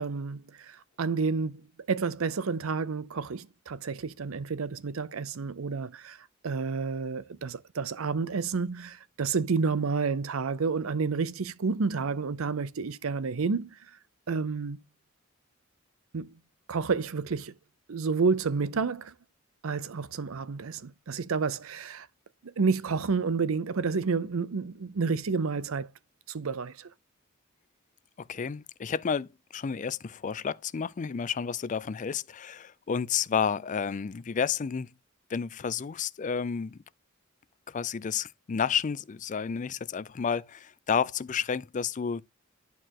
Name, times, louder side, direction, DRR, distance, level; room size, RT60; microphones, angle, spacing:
voice 1, 0.0-1.6 1.9-6.2 6.4-13.7 14.3-14.8 16.1-16.3 16.7-17.5 17.9-19.1 19.6-22.1 22.4-25.9 26.3-26.9, right 4 dB, 80° right, 0.6 m, -30 dB
voice 2, 28.2-34.9 35.3-36.8 37.7-42.2, left 6 dB, 35° left, 0.4 m, -31 dB
11.0 x 4.7 x 2.9 m
head